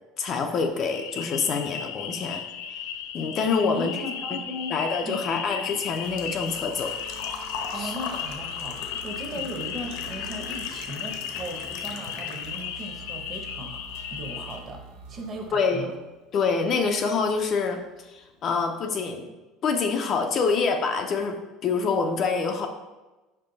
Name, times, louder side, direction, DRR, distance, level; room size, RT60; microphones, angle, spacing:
voice 1, 0.2-2.4 3.1-3.9 4.7-6.9 7.7-7.9 15.5-15.9 16.3-19.3 19.6-22.7, left 5 dB, 30° left, 5 dB, 0.4 m, -26 dB
sound 1, 0.9-14.6, left 8 dB, 90° left, 0.5 m, -35 dB
voice 2, 3.6-4.8 5.1-5.7 7.7-14.8 15.1-15.9, right 1 dB, 25° right, 3 dB, 0.8 m, -37 dB
Engine / Trickle dribble / Fill (with liquid), 5.0-12.9 13.3-14.3 14.6-14.7 16.6-16.7 16.8-17.2 17.5-17.6 17.9-18.0, left 5 dB, 70° left, 0.9 m, -40 dB
sound 2, 6.0-15.5, right 4 dB, 75° right, 1.0 m, -47 dB
5.5 x 5.0 x 3.9 m, 1.1 s
cardioid pair, 180°, 0 cm